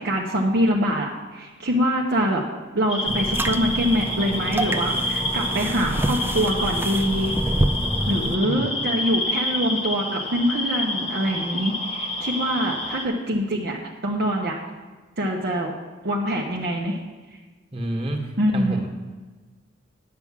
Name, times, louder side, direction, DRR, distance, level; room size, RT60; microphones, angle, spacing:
voice 1, 0.0-2.4 2.7-7.4 8.1-13.8 14.0-14.6 15.2-15.7 16.0-17.0 18.4-18.9, equal, 55° right, -2 dB, 1.0 m, -24 dB
sound 1, 2.9-13.1, left 1 dB, 30° left, 1.1 m, -28 dB
sound 2, 3.0-8.4, right 1 dB, 10° right, 0.4 m, -27 dB
voice 2, 7.8-8.2 8.4-8.6 17.7-18.9, right 1 dB, 30° right, 1 dB, 1.6 m, -29 dB
9.6 x 6.0 x 7.3 m, 1.3 s
head